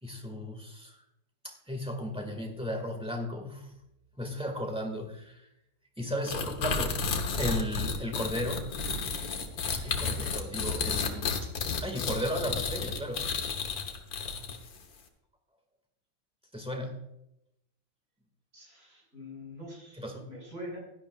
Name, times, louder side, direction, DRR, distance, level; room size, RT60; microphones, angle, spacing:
voice 1, 0.0-1.0 1.4-3.7 4.2-5.4 6.0-7.0 7.3-8.7 9.7-11.3 11.8-13.3 16.5-16.9 20.0-20.3, equal, 5° right, 3 dB, 1.7 m, -35 dB
sound 1, 6.3-14.8, left 5 dB, 75° left, 1.9 m, -32 dB
voice 2, 18.5-20.8, left 1 dB, 40° right, -3 dB, 5.9 m, -44 dB
16.0 x 11.5 x 2.4 m, 0.82 s
omnidirectional pair, 2.2 m